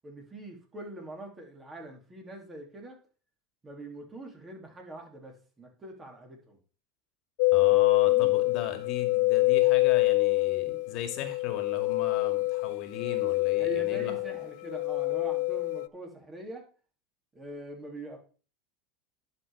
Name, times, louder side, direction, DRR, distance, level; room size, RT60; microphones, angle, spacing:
voice 1, 0.0-3.0 3.6-6.6 7.6-8.3 13.6-16.7 17.3-18.2, right 2 dB, 20° right, 2 dB, 3.0 m, -43 dB
sound 1, 7.4-15.9, left 21 dB, 70° left, 0.4 m, -25 dB
voice 2, 7.5-14.1, left 8 dB, 55° left, 6 dB, 2.0 m, -38 dB
10.5 x 5.5 x 4.9 m, 0.37 s
supercardioid pair, 120°, 0 cm